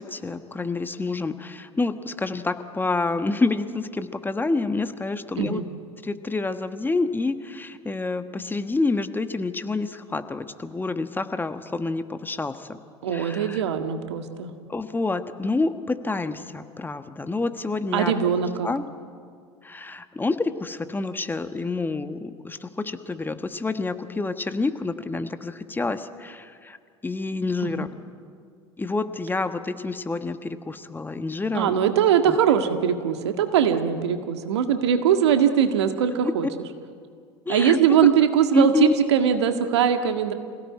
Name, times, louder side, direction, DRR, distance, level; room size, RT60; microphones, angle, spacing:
voice 1, 0.0-5.6 6.0-12.8 13.1-13.6 14.7-18.1 18.6-18.9 19.6-26.8 27.0-27.9 28.8-31.7 32.2-32.4 36.2-36.3 37.4-38.1 38.5-38.9, left 3 dB, 15° left, 9 dB, 1.4 m, -28 dB
voice 2, 13.0-14.5 17.9-18.7 27.6-27.9 31.5-36.5 37.5-40.3, right 8 dB, 75° right, 7 dB, 1.8 m, -21 dB
26.5 x 17.5 x 9.5 m, 2.1 s
hypercardioid pair, 75°, 14 cm